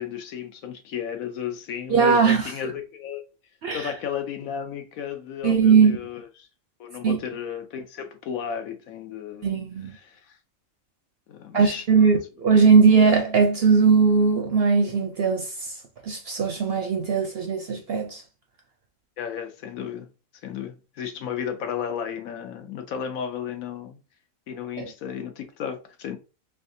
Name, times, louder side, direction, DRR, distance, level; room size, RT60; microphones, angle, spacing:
voice 1, 0.0-3.2 3.7-6.5 6.8-10.4 11.3-12.1 19.2-20.1 20.4-24.0 24.5-26.2, left 8 dB, 75° left, 1.1 m, -34 dB
voice 2, 1.9-2.5 3.6-3.9 5.4-6.0 7.0-7.2 9.4-9.9 11.5-15.8 16.0-18.2 24.8-24.9, right 5 dB, 60° right, 0.6 m, -19 dB
3.5 x 3.3 x 2.6 m
omnidirectional pair, 1.5 m